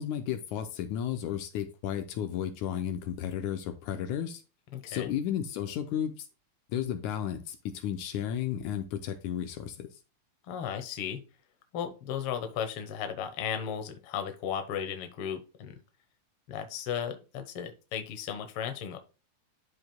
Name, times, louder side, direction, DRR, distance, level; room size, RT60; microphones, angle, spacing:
voice 1, 0.0-4.4 4.9-6.3 6.7-9.9, left 9 dB, 80° left, 2.1 m, -33 dB
voice 2, 4.7-5.1 10.5-11.2 11.7-15.7 16.5-19.0, left 8 dB, 60° left, 1.7 m, -35 dB
12.5 x 5.0 x 2.2 m
omnidirectional pair, 3.6 m